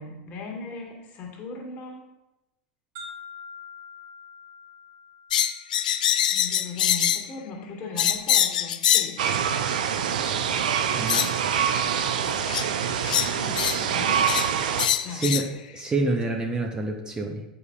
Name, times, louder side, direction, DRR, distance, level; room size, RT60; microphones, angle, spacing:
voice 1, 0.0-2.1 6.3-9.3 13.2-14.8 15.0-15.6, left 4 dB, 40° left, -1 dB, 1.8 m, -38 dB
sound 1, 3.0-6.9, left 4 dB, 55° right, 1.9 m, -45 dB
sound 2, 5.3-7.3 8.0-9.2 10.3-10.4 11.1-11.3 12.5-12.7 13.0-13.8 14.3-14.5 14.8-15.5, left 10 dB, 75° left, 0.3 m, -23 dB
sound 3, 9.2-14.9, right 8 dB, 70° right, 0.5 m, -25 dB
voice 2, 10.9-11.3 15.1-15.5 15.7-17.4, right 2 dB, 20° right, 3 dB, 0.7 m, -27 dB
8.0 x 5.0 x 2.4 m, 0.96 s
hypercardioid pair, 100°, 4 cm